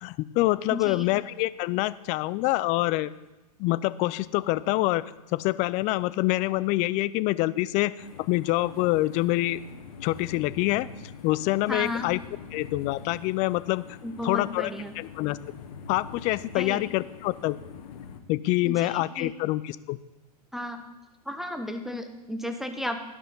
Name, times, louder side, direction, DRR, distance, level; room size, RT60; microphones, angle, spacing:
voice 1, 0.0-3.1 3.6-5.0 5.3-9.6 10.0-10.9 11.2-12.2 12.5-13.8 14.2-14.7 15.0-15.4 15.9-17.6 18.3-20.0, left 18 dB, 35° left, 17 dB, 0.4 m, -26 dB
voice 2, 0.7-1.1 11.7-12.1 14.0-14.9 16.5-16.8 18.6-19.3 20.5-20.8 21.3-23.0, left 1 dB, ahead, 6 dB, 0.7 m, -33 dB
sound 1, 8.0-18.2, left 6 dB, 65° left, 1.2 m, -45 dB
12.5 x 5.6 x 5.4 m, 1.0 s
hypercardioid pair, 100°, 20 cm